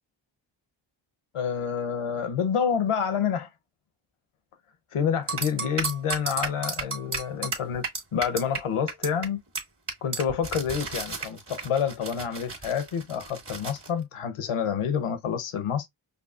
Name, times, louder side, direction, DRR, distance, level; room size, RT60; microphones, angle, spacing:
voice 1, 1.3-3.5 4.9-7.8 8.1-9.4 10.0-15.9, left 7 dB, 90° left, 0.7 m, -28 dB
sound 1, 5.3-8.6 8.9-9.3 9.6-9.7 9.9-13.9, right 4 dB, 55° right, 1.7 m, -32 dB
5.2 x 2.3 x 2.3 m
cardioid pair, 45°, 50 cm